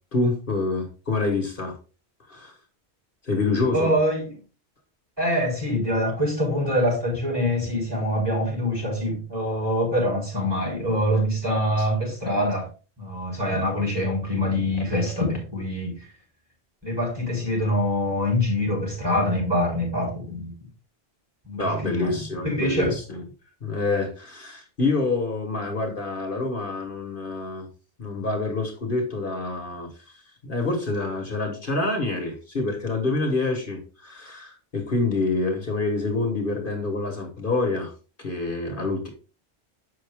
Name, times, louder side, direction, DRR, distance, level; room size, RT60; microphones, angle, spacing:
voice 1, 0.1-1.7 2.3-2.5 3.2-4.0 21.5-23.2 23.6-27.7 28.0-29.9 30.4-37.9 38.2-39.1, left 3 dB, 55° left, 3 dB, 1.7 m, -27 dB
voice 2, 3.7-4.3 5.2-12.7 13.0-16.1 16.8-20.5 21.4-22.9, equal, 20° right, -2 dB, 4.1 m, -25 dB
7.4 x 6.0 x 3.6 m, 0.34 s
omnidirectional pair, 1.1 m